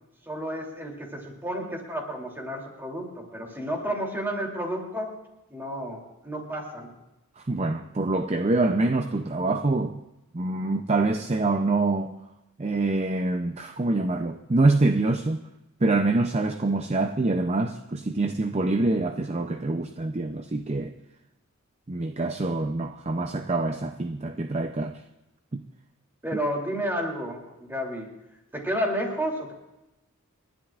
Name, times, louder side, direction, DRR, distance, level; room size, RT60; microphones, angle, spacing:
voice 1, 0.3-5.1 5.5-6.9 26.2-28.1 28.5-29.5, equal, 10° right, 2.9 m, -31 dB
voice 2, 7.4-10.0 10.3-12.1 12.6-15.4 15.8-20.9 21.9-25.0 25.5-25.6, right 2 dB, 30° right, 0.5 m, -25 dB
29.5 x 12.0 x 2.5 m
head